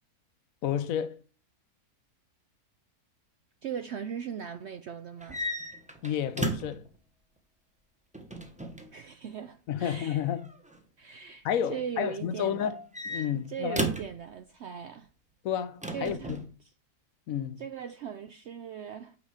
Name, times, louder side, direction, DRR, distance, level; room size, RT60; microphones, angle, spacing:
voice 1, 0.6-1.2 6.0-6.9 9.7-10.5 11.4-12.8 13.0-13.8 15.4-16.4 17.3-17.6, left 9 dB, 70° left, 1.1 m, -31 dB
voice 2, 3.6-5.4 8.9-10.3 11.0-12.7 13.5-15.1 15.9-16.4 17.6-19.2, right 8 dB, 65° right, 0.7 m, -39 dB
sound 1, 5.2-6.9 8.1-8.9 10.4-10.8 12.6-14.2 15.8-16.5, right 1 dB, 5° right, 1.0 m, -34 dB
8.8 x 5.2 x 4.9 m
omnidirectional pair, 1.6 m